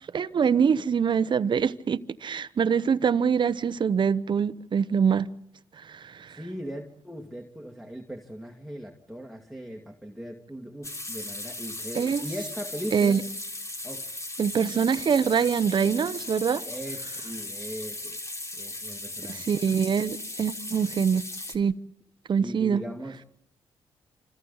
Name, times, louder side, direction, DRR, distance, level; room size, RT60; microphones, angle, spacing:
voice 1, 0.1-5.3 5.8-6.4 11.9-12.2 12.9-13.2 14.4-16.6 19.3-21.2 21.5-21.7 22.3-22.8, right 7 dB, 50° right, 0.9 m, -24 dB
voice 2, 6.3-13.2 13.8-14.2 14.6-14.7 16.7-18.2 18.5-19.5 22.3-23.2, equal, ahead, 2.1 m, -39 dB
sound 1, 10.8-21.6, left 2 dB, 30° left, 3.3 m, -37 dB
29.0 x 26.5 x 4.0 m
supercardioid pair, 60°, 10 cm